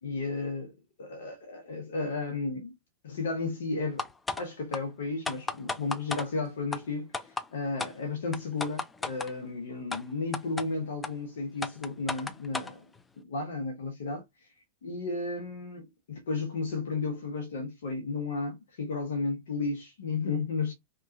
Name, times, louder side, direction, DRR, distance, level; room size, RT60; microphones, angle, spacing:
voice 1, 0.0-0.7 1.0-2.7 3.0-4.1 4.4-7.1 7.5-12.9 13.2-14.2 14.8-20.7, left 3 dB, 60° left, 0.8 m, -33 dB
sound 1, 4.0-4.4 4.7-4.8 5.3-6.3 6.7-6.8 7.1-7.5 7.8-7.9 8.3-9.3 9.9-10.0 10.3-10.7 11.0-11.1 11.6-12.7, left 3 dB, 10° left, 0.4 m, -33 dB
2.9 x 2.3 x 2.5 m
figure-of-eight pair, 90°, 0 cm